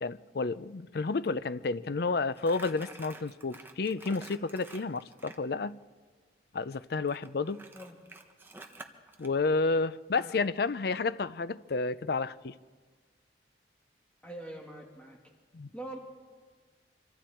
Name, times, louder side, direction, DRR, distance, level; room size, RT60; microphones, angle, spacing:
voice 1, 0.0-5.8 6.5-7.6 9.2-12.5 15.5-15.7, left 3 dB, 55° left, 0.5 m, -31 dB
Crumpling crinkling, 2.3-5.4 7.1-9.3, right 2 dB, 10° right, 1.2 m, -49 dB
voice 2, 14.2-15.2 15.7-16.0, right 1 dB, 5° left, 2.6 m, -43 dB
25.5 x 24.5 x 4.5 m
head